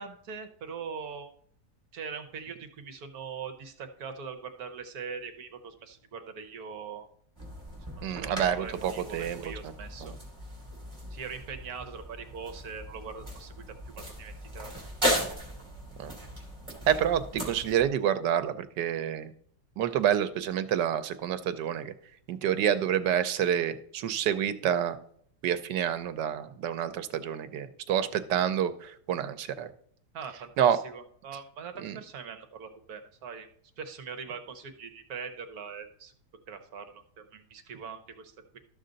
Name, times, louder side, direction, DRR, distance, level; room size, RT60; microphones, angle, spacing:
voice 1, 0.0-1.3 1.9-7.1 8.1-10.1 11.1-13.5 13.8-14.7 30.1-33.5 33.8-36.1 36.5-38.6, right 6 dB, 65° right, 8 dB, 1.4 m, -42 dB
sound 1, 7.4-17.8, equal, 15° right, 2.8 m, -37 dB
voice 2, 8.0-9.7 10.0-10.1 16.0-16.1 16.9-19.3 19.8-21.9 22.3-25.0 25.4-29.7 30.6-30.8 31.8-32.0, right 9 dB, 85° right, 11 dB, 1.3 m, -28 dB
12.5 x 6.5 x 3.9 m, 0.64 s
omnidirectional pair, 1.8 m